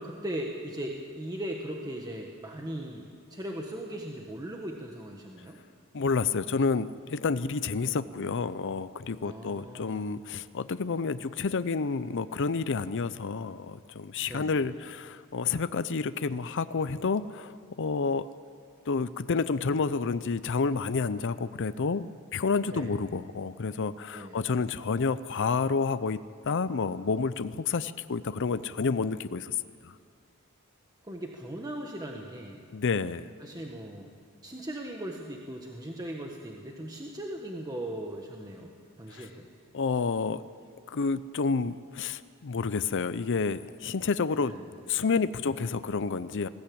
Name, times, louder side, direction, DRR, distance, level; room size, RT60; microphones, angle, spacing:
voice 1, 0.0-5.6 8.1-8.3 9.2-10.2 14.3-14.6 22.7-23.0 24.1-24.4 31.0-32.6 33.4-34.1 34.4-38.7 39.0-39.5 44.4-44.7, right 1 dB, 20° right, 1 dB, 1.4 m, -38 dB
voice 2, 5.9-18.3 18.9-29.5 29.8-29.9 32.7-33.3 39.1-39.3 39.7-40.4 40.9-44.5 44.9-46.5, left 4 dB, 60° left, 14 dB, 0.6 m, -29 dB
20.5 x 16.0 x 8.6 m, 2.2 s
head